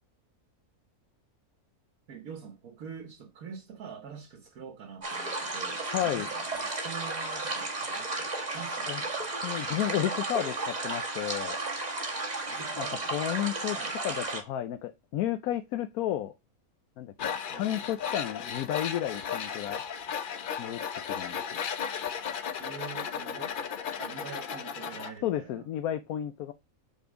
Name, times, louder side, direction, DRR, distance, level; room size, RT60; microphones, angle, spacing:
voice 1, 2.1-9.1 12.5-13.1 13.8-14.0 17.5-17.7 22.6-23.5 24.0-25.6, right 7 dB, 75° right, 1.5 m, -45 dB
sound 1, 5.0-14.4, right 2 dB, 30° right, 1.6 m, -33 dB
voice 2, 5.9-6.3 8.9-9.0 9.4-11.6 12.8-13.8 14.0-16.3 17.0-19.8 20.6-21.4 25.2-26.5, left 12 dB, 85° left, 1.1 m, -32 dB
Tools, 17.2-25.1, left 7 dB, 55° left, 0.6 m, -35 dB
5.5 x 4.4 x 6.1 m
omnidirectional pair, 1.5 m